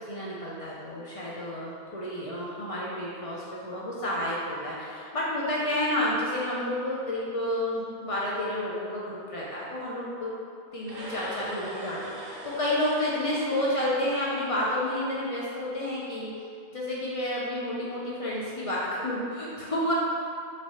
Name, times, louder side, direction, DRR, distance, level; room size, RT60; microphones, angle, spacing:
voice 1, 0.0-10.3 10.7-16.3 16.7-19.9, left 1 dB, 50° left, -6 dB, 0.4 m, -30 dB
sound 1, 10.8-15.0, equal, 50° right, 0.5 m, -42 dB
3.1 x 2.7 x 2.7 m, 2.3 s
omnidirectional pair, 1.0 m